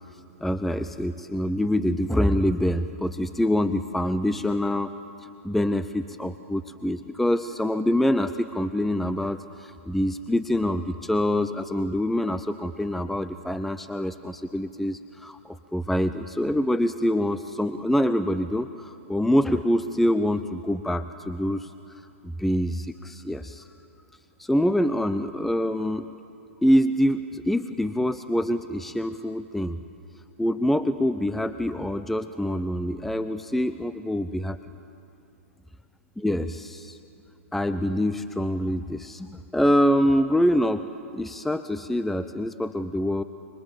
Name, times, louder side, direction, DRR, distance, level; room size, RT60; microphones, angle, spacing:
voice 1, 0.4-4.9 5.2-21.7 22.2-23.7 24.4-26.1 26.6-29.8 30.4-34.6 36.2-37.0 37.5-40.9 41.1-43.2, equal, 5° left, 11 dB, 0.5 m, -25 dB
26.0 x 24.5 x 7.3 m, 2.6 s
figure-of-eight pair, 110°, 7 cm